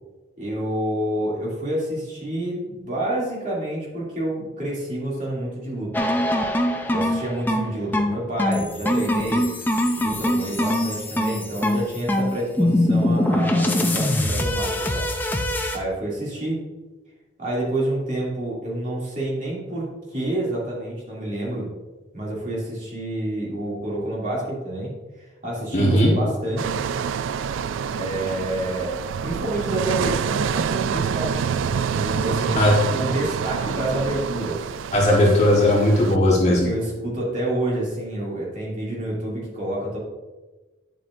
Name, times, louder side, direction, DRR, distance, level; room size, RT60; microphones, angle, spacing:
voice 1, 0.4-6.1 6.3-6.6 6.9-9.4 9.9-15.1 15.6-16.6 17.4-21.7 22.1-24.9 25.4-26.8 27.9-32.5 32.9-34.6 34.9-35.2 36.5-40.0, right 1 dB, 40° right, -5 dB, 2.8 m, -28 dB
sound 1, 5.9-15.8, left 1 dB, 10° left, 0.5 m, -22 dB
voice 2, 25.7-26.1 32.6-32.8 34.9-36.7, left 1 dB, 35° left, -4 dB, 1.5 m, -17 dB
sound 2, 26.6-36.2, right 7 dB, 75° right, 0.3 m, -27 dB
9.5 x 7.4 x 2.6 m, 1.2 s
head